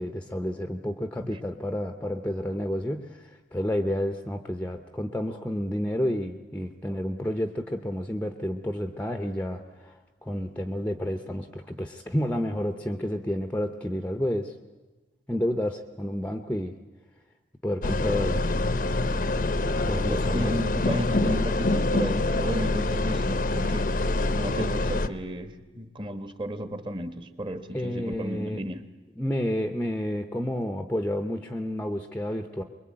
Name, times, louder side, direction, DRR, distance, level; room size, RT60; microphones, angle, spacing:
voice 1, 0.0-14.5 15.3-16.7 17.6-18.5 19.8-20.6 27.7-28.6 29.2-32.6, left 1 dB, 10° left, 7 dB, 0.8 m, -30 dB
sound 1, 17.8-25.1, left 2 dB, 45° left, 0.8 m, -25 dB
voice 2, 20.0-23.9 24.3-28.8, equal, 25° right, 9 dB, 1.4 m, -34 dB
24.0 x 22.0 x 8.8 m, 1.2 s
head